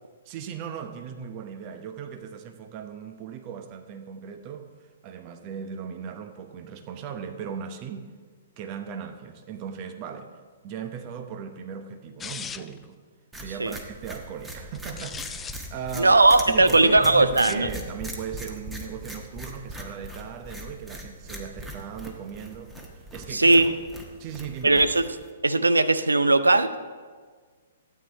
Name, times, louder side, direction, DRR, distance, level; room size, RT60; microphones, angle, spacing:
voice 1, 0.2-4.7 5.0-8.1 8.6-10.3 10.6-13.0 13.4-22.7 23.1-23.7 24.2-24.8, right 7 dB, 35° right, 7 dB, 1.0 m, -37 dB
sound 1, 12.2-12.8 14.7-15.6 17.3-17.7, left 7 dB, 15° left, 0.4 m, -37 dB
sound 2, 13.3-25.3, right 1 dB, 10° right, 1.3 m, -40 dB
voice 2, 16.0-17.7 23.3-23.7 24.6-25.1 25.4-26.8, right 2 dB, 80° right, 12 dB, 0.6 m, -18 dB
13.0 x 8.8 x 4.1 m, 1.5 s
figure-of-eight pair, 120°, 0 cm